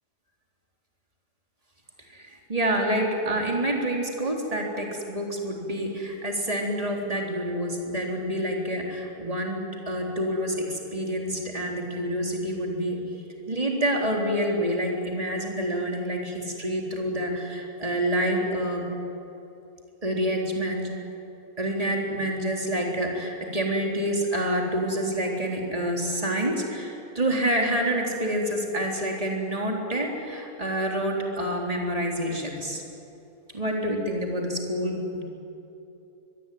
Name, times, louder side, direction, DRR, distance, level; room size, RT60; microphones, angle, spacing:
voice 1, 2.1-13.1 13.5-18.9 20.0-21.0 21.6-32.8 33.5-35.2, equal, 20° right, 0 dB, 3.9 m, -27 dB
24.0 x 21.5 x 9.4 m, 2.8 s
omnidirectional pair, 1.8 m